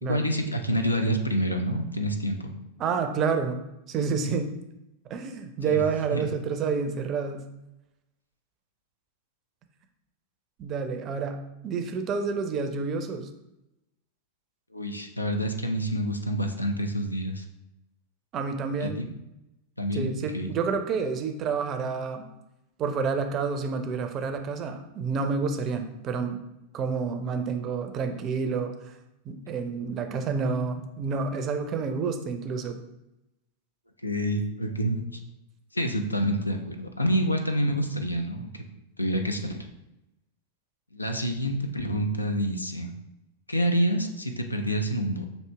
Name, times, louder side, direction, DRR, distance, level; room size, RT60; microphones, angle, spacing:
voice 1, 0.0-2.5 5.7-5.8 6.1-6.3 14.7-17.4 18.8-19.1 19.8-20.5 34.0-35.2 35.7-38.6 39.0-39.6 40.9-42.9 43.5-45.3, equal, 85° left, 5 dB, 0.5 m, -27 dB
voice 2, 2.8-3.6 3.9-4.5 5.1-7.4 10.6-13.3 18.3-19.0 19.9-22.2 22.8-26.4 26.7-28.7 29.3-32.8, right 5 dB, 30° right, 6 dB, 0.5 m, -29 dB
6.0 x 2.7 x 3.3 m, 0.89 s
figure-of-eight pair, 90°, 0 cm